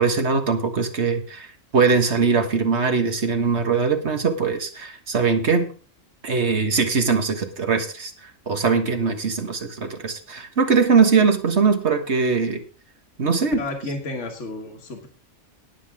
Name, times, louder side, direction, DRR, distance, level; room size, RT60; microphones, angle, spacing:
voice 1, 0.0-5.7 6.2-12.6 13.2-13.6, right 5 dB, 60° right, 6 dB, 1.8 m, -21 dB
voice 2, 13.6-15.1, left 2 dB, 70° left, 3 dB, 1.8 m, -32 dB
19.5 x 7.7 x 3.6 m, 0.37 s
omnidirectional pair, 1.3 m